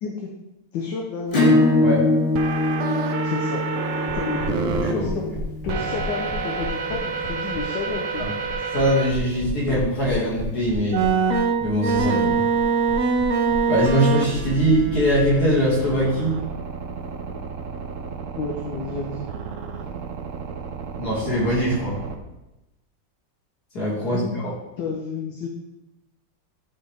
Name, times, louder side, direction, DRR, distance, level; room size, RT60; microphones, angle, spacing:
voice 1, 0.7-1.5 3.2-3.7 4.1-5.3 5.6-8.2 18.4-19.2 24.0-24.4 24.8-25.5, left 5 dB, 75° left, 1 dB, 1.5 m, -30 dB
Acoustic guitar / Strum, 1.3-6.6, left 2 dB, 35° left, 1.4 m, -23 dB
sound 1, 2.3-4.9 5.7-9.1 9.7-9.8 10.9-22.1, right 5 dB, 65° right, 0.8 m, -27 dB
sound 2, 4.1-13.9, equal, 20° left, 1.2 m, -35 dB
voice 2, 8.7-11.0 11.6-12.4 13.7-16.3 21.0-22.0 23.7-24.5, equal, 55° left, -6 dB, 2.8 m, -22 dB
10.5 x 4.3 x 3.5 m, 0.96 s
omnidirectional pair, 2.1 m